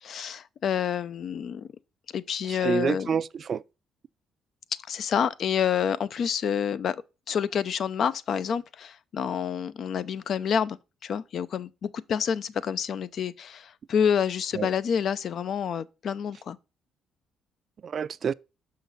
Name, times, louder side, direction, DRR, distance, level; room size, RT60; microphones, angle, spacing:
voice 1, 0.0-1.7 2.1-3.2 4.9-7.0 7.3-16.6, left 8 dB, 60° left, 0.5 m, -28 dB
voice 2, 2.5-3.6 14.5-14.7 17.8-18.3, right 7 dB, 50° right, 0.3 m, -28 dB
6.2 x 5.8 x 3.9 m
cardioid pair, 90°, 0 cm